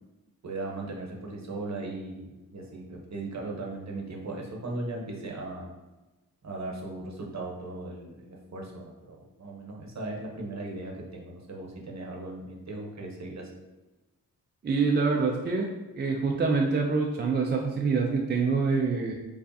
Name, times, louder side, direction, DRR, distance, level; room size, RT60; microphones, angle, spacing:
voice 1, 0.4-5.7 6.4-13.5, right 2 dB, 50° right, 0 dB, 0.9 m, -38 dB
voice 2, 14.6-15.7 16.0-19.1, right 4 dB, 30° right, 0 dB, 0.4 m, -25 dB
4.7 x 2.4 x 2.6 m, 1.1 s
cardioid pair, 70°, 36 cm